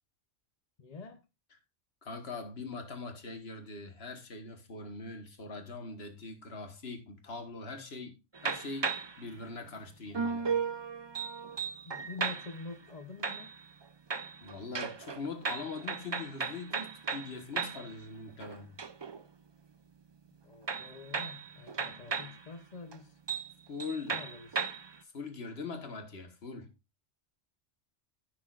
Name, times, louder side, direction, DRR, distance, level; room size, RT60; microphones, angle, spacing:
voice 1, 0.8-1.2 11.8-13.5 20.4-23.2 24.1-24.7, left 4 dB, 35° left, 1.0 m, -46 dB
voice 2, 2.0-8.2 8.4-10.5 14.4-18.7 23.7-24.2 25.0-26.7, left 4 dB, 60° left, 1.6 m, -42 dB
sound 1, 8.3-9.2 10.1-12.7 13.2-13.8 14.1-17.9 18.3-19.2 20.7-22.4 22.9-23.0 23.3-23.5 23.8-25.0, right 5 dB, 40° right, 0.4 m, -36 dB
14.5 x 6.3 x 2.5 m
omnidirectional pair, 1.2 m